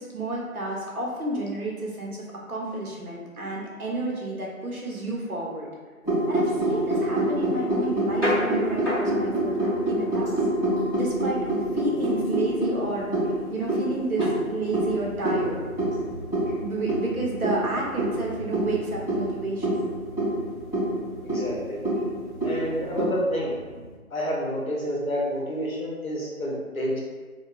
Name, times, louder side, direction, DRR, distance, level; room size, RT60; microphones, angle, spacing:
voice 1, 0.0-5.7 6.3-10.4 10.9-11.4 11.7-13.1 13.5-15.6 16.6-19.9, right 2 dB, 75° right, -3 dB, 0.9 m, -31 dB
sound 1, 6.0-23.1, right 1 dB, 15° left, 1.4 m, -26 dB
sound 2, 7.8-24.0, left 1 dB, 55° left, 1.2 m, -37 dB
voice 2, 21.2-21.8 22.4-23.6 24.1-27.0, equal, 75° left, -4 dB, 0.9 m, -29 dB
2.9 x 2.3 x 2.3 m, 1.4 s
figure-of-eight pair, 165°, 43 cm